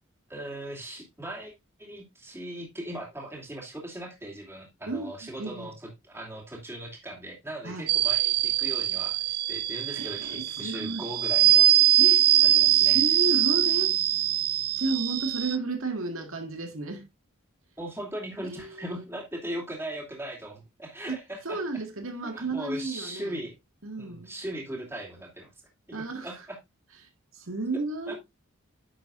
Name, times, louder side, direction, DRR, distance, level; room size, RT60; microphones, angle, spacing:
voice 1, 0.3-1.5 1.8-11.7 12.4-13.0 17.8-21.6 22.2-23.5 24.0-25.5 25.9-26.6 28.1-28.2, right 1 dB, 10° right, 2.6 m, -39 dB
voice 2, 5.4-5.7 7.6-7.9 9.9-11.0 12.0-12.2 12.6-13.9 14.8-17.0 18.4-19.0 21.1-21.2 21.4-23.4 23.8-24.3 25.9-26.5 27.3-28.2, right 2 dB, 80° right, 1.8 m, -33 dB
sound 1, 7.9-15.6, right 13 dB, 50° right, 0.4 m, -23 dB
10.0 x 6.9 x 2.5 m
head